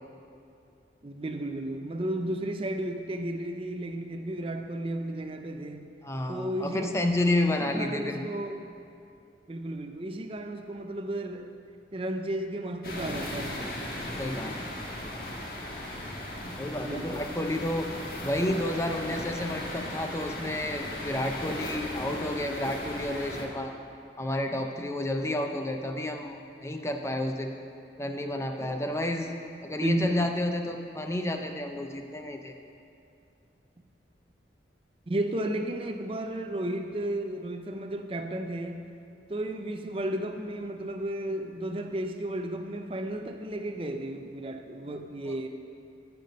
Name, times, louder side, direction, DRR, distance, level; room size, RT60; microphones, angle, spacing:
voice 1, 1.0-5.9 6.3-6.9 7.6-8.7 9.5-11.5 11.9-13.9 16.8-17.3 29.8-30.2 35.1-38.9 39.3-45.5, right 1 dB, 30° right, 6 dB, 0.5 m, -33 dB
voice 2, 6.0-8.3 14.2-14.6 16.6-17.9 18.2-23.7 24.2-27.6 28.0-29.4 29.6-32.5 45.3-45.4, left 1 dB, 15° left, 4 dB, 0.5 m, -30 dB
sound 1, 12.8-23.5, left 1 dB, 55° left, 1.4 m, -37 dB
14.5 x 5.9 x 5.2 m, 2.6 s
head